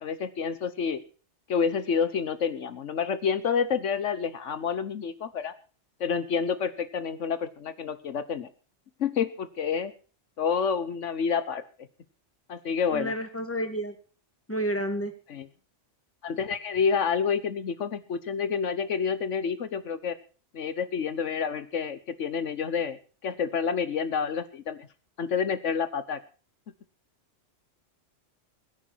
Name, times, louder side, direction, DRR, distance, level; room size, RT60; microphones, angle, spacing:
voice 1, 0.0-1.0 1.5-5.5 6.0-8.5 9.0-9.9 10.4-11.6 12.5-13.1 15.3-15.5 16.2-20.1 20.5-23.0 23.2-24.9 25.2-26.2, left 6 dB, 75° left, 13 dB, 1.3 m, -28 dB
voice 2, 12.9-13.9 14.5-15.1, right 1 dB, 10° left, 6 dB, 2.5 m, -30 dB
22.0 x 10.5 x 4.5 m, 0.38 s
omnidirectional pair, 1.3 m